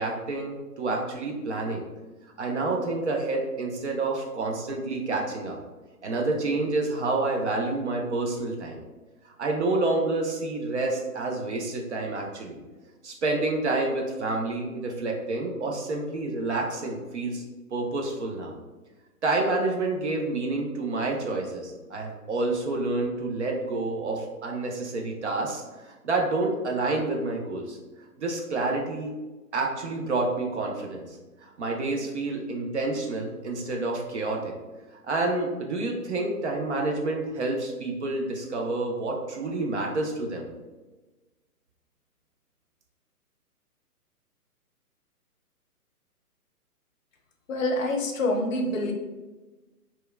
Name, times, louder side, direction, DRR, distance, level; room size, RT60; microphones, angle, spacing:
voice 1, 0.0-1.8 2.4-5.6 6.0-8.8 9.2-12.6 13.0-17.4 17.7-18.5 19.2-27.8 28.2-29.1 29.5-34.5 35.0-40.5, right 2 dB, 50° right, 1 dB, 0.4 m, -28 dB
voice 2, 47.5-48.9, left 1 dB, 60° left, 3 dB, 0.6 m, -26 dB
2.8 x 2.2 x 2.3 m, 1.2 s
hypercardioid pair, 145°, 46 cm